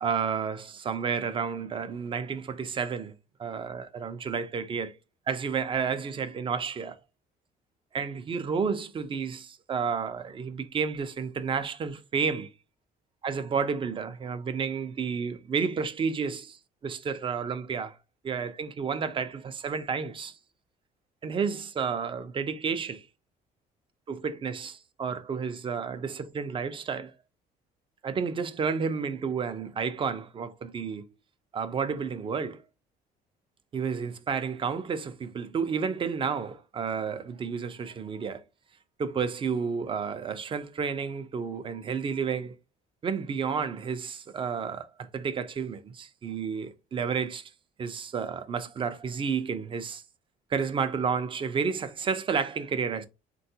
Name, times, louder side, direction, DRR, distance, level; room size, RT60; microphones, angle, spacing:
voice 1, 0.0-3.1 3.4-4.9 5.3-7.0 7.9-12.5 13.2-18.0 18.2-20.4 21.2-23.1 24.1-27.1 28.0-31.1 31.5-32.6 33.7-38.4 39.0-42.5 43.0-47.5 47.8-50.0 50.5-53.1, right 6 dB, 30° right, 0.4 m, -31 dB
3.5 x 2.2 x 2.7 m
cardioid pair, 110°, 17 cm